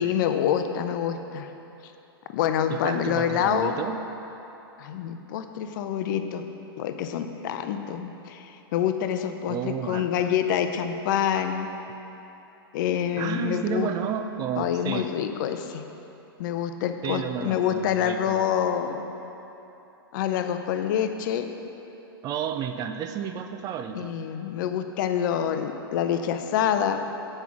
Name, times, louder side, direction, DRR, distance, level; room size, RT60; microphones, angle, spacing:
voice 1, 0.0-1.5 2.3-3.8 4.8-6.4 6.8-11.7 12.7-13.9 14.6-15.9 16.4-19.0 20.1-21.5 23.9-27.1, left 9 dB, 55° left, 8 dB, 0.6 m, -26 dB
voice 2, 2.7-4.0 9.5-10.3 13.2-15.1 17.0-18.4 22.2-24.1, right 8 dB, 30° right, 7 dB, 0.5 m, -31 dB
8.2 x 5.4 x 6.0 m, 3.0 s
hypercardioid pair, 115°, 13 cm